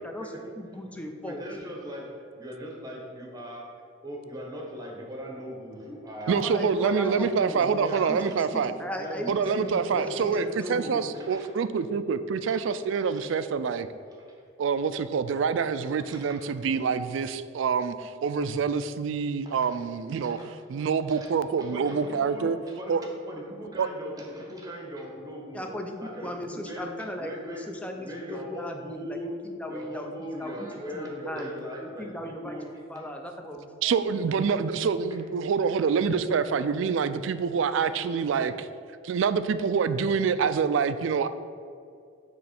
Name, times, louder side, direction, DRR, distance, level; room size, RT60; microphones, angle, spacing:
voice 1, 0.0-1.5 6.2-7.6 7.9-10.9 25.5-30.1 30.4-30.7 30.9-31.5 31.8-32.6 32.9-33.7 34.1-34.4, left 1 dB, 5° left, 3 dB, 0.4 m, -37 dB
voice 2, 1.3-3.7 4.0-6.5 6.8-8.7 9.0-11.5 12.4-12.6 12.9-13.4 14.2-14.4 15.3-15.4 16.0-16.5 19.4-19.8 20.2-21.3 21.6-25.7 26.0-26.9 27.2-27.6 27.9-29.4 29.7-33.1 33.8-34.1 35.1-35.2 38.2-38.3, equal, 20° right, -1 dB, 1.0 m, -40 dB
voice 3, 6.3-8.7 9.3-10.4 10.7-13.9 14.6-20.4 20.7-22.6 22.9-23.0 23.8-23.9 33.8-38.7 39.0-41.3, right 6 dB, 70° right, 12 dB, 0.3 m, -26 dB
6.8 x 3.1 x 5.7 m, 2.3 s
head